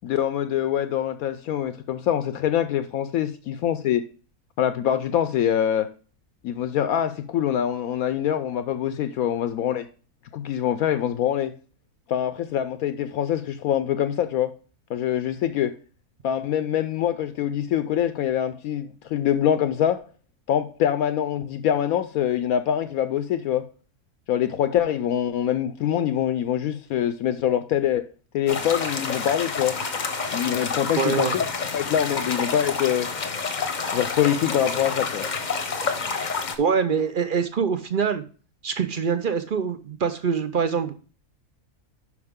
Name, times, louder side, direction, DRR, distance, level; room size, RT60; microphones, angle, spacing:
voice 1, 0.0-4.0 4.6-5.9 6.4-9.9 10.3-11.5 12.1-14.6 14.9-15.8 16.2-20.0 20.5-23.7 24.3-28.1 28.3-29.8 30.3-31.4 31.7-33.1 33.9-35.3, left 10 dB, 75° left, 1.0 m, -24 dB
sound 1, 28.5-36.6, left 5 dB, 40° left, 0.8 m, -28 dB
voice 2, 31.0-31.4 35.7-35.8 36.6-38.2 38.6-40.9, right 6 dB, 55° right, 0.6 m, -24 dB
11.0 x 4.8 x 3.6 m
omnidirectional pair, 1.6 m